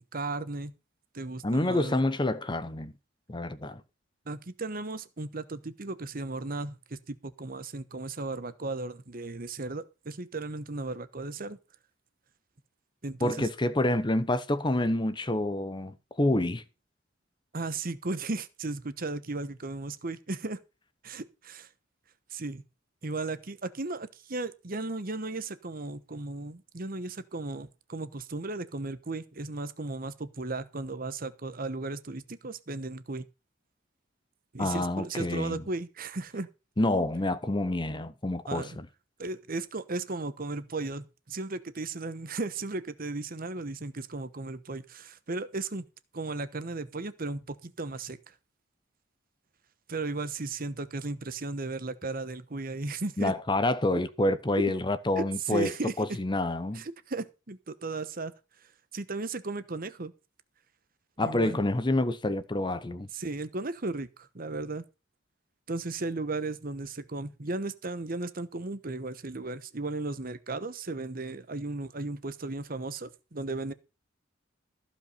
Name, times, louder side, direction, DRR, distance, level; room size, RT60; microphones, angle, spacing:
voice 1, 0.1-0.7 1.1-2.0 4.3-11.6 13.0-13.5 17.5-20.6 21.0-21.7 22.3-22.6 23.0-33.2 34.5-36.5 38.5-38.8 39.2-45.9 46.1-48.3 49.9-53.3 54.6-54.7 55.2-55.9 56.7-58.3 58.9-60.1 61.2-61.6 63.1-64.8 65.7-73.7, right 3 dB, 45° right, 1.1 m, -35 dB
voice 2, 1.4-2.9 3.3-3.8 13.2-16.6 34.6-35.6 36.8-38.9 53.2-55.7 56.0-56.8 61.2-63.1, left 1 dB, 25° left, 0.8 m, -28 dB
15.0 x 5.4 x 6.6 m
head